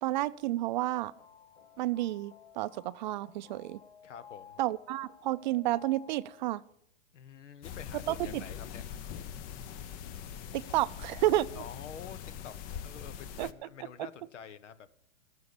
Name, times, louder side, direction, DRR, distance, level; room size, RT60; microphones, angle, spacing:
voice 1, 0.0-1.1 1.8-3.8 4.6-6.6 8.1-8.4 10.5-11.6 13.4-13.5 14.0-14.1, right 15 dB, 40° right, 0.4 m, -31 dB
sound 1, 0.7-6.6, left 7 dB, 60° left, 1.8 m, -55 dB
voice 2, 4.0-4.6 7.1-8.8 11.5-12.5 12.8-14.9, left 8 dB, 80° left, 1.1 m, -48 dB
sound 2, 7.6-13.5, left 8 dB, 25° left, 0.5 m, -42 dB
14.5 x 7.0 x 6.8 m
hypercardioid pair, 130°, 35 cm